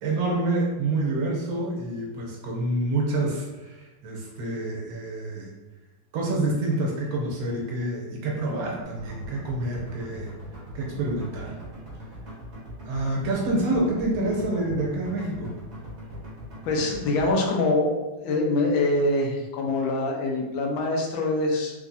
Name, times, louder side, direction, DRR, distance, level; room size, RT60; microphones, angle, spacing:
voice 1, 0.0-5.5 6.1-10.3 10.7-11.6 12.8-15.5, right 2 dB, 85° right, -2 dB, 1.6 m, -27 dB
sound 1, 8.8-17.3, equal, 45° right, 1.2 m, -41 dB
voice 2, 16.7-17.9 18.2-21.7, left 2 dB, 90° left, 0 dB, 1.5 m, -24 dB
3.5 x 3.1 x 2.6 m, 1.1 s
omnidirectional pair, 2.1 m